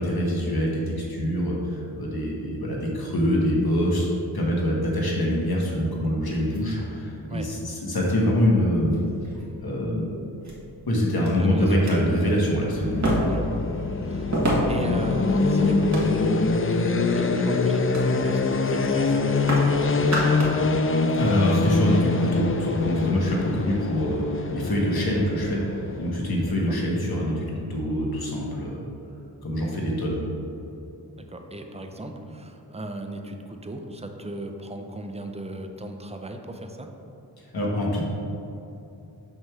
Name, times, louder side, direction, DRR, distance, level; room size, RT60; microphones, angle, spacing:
voice 1, 0.0-4.1 4.3-9.0 9.6-10.1 10.9-13.1 21.2-28.8 29.4-30.3 37.4-38.0, equal, 60° left, -3 dB, 1.5 m, -25 dB
sound 1, 6.3-7.3 8.2-8.3 8.9-9.5 10.4-10.6 11.2-11.3 11.7-11.9 13.0-13.5 14.3-14.9 15.6-16.5 17.0-17.3 17.9-18.1 18.4-18.6 18.8-19.7 20.0-20.6 21.0-21.1, right 1 dB, 40° right, 1.5 m, -28 dB
voice 2, 11.3-11.9 13.3-13.4 14.0-14.4 14.7-20.0 26.7-26.8 31.2-36.9, right 1 dB, 15° right, 4 dB, 0.6 m, -36 dB
sound 2, 12.6-26.5, left 3 dB, 35° left, 0.4 m, -24 dB
6.4 x 3.6 x 6.0 m, 2.8 s
wide cardioid pair, 70°, 42 cm